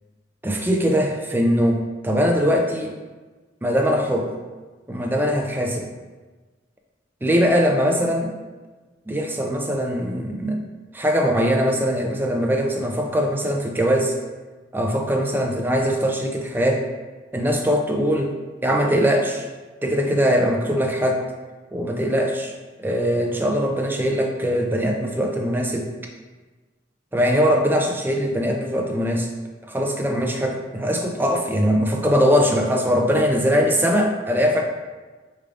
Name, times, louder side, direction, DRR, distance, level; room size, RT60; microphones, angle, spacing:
voice 1, 0.4-2.9 3.6-4.3 4.9-5.9 7.2-8.3 9.1-10.6 10.9-14.1 14.7-16.8 17.3-18.3 18.6-19.5 19.8-21.2 21.7-22.5 22.8-25.9 27.1-29.3 29.7-34.6, equal, 10° right, 1 dB, 0.4 m, -21 dB
4.7 x 3.2 x 2.5 m, 1.3 s
head